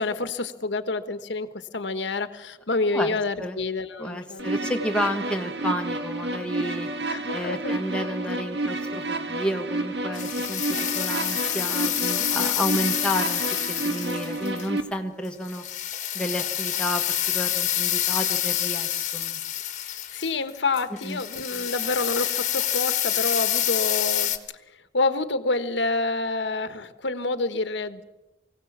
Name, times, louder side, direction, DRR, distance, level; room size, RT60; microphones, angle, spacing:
voice 1, 0.0-4.6 7.1-7.7 19.8-24.3 24.9-28.0, left 3 dB, 85° left, 10 dB, 1.2 m, -28 dB
voice 2, 2.9-3.6 4.0-6.9 7.3-13.4 13.7-15.6 16.1-19.4 21.0-21.2, equal, 5° left, 3 dB, 1.3 m, -31 dB
sound 1, 4.4-14.8, right 2 dB, 75° right, 1.7 m, -30 dB
sound 2, 10.1-14.7 15.5-24.4, left 11 dB, 40° left, 1.4 m, -27 dB
23.0 x 17.0 x 7.3 m, 1.0 s
head